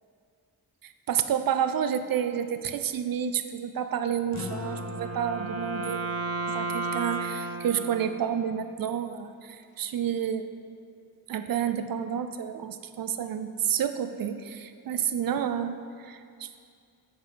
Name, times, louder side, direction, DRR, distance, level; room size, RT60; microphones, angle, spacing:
voice 1, 0.8-6.0 6.5-10.4 11.3-16.5, right 8 dB, 70° right, 10 dB, 0.6 m, -30 dB
sound 1, 4.3-9.0, left 4 dB, 50° left, 0.7 m, -44 dB
Wind instrument woodwind instrument, 4.4-8.7, right 3 dB, 40° right, 0.9 m, -34 dB
10.0 x 6.5 x 3.9 m, 2.3 s
wide cardioid pair, 135°, 36 cm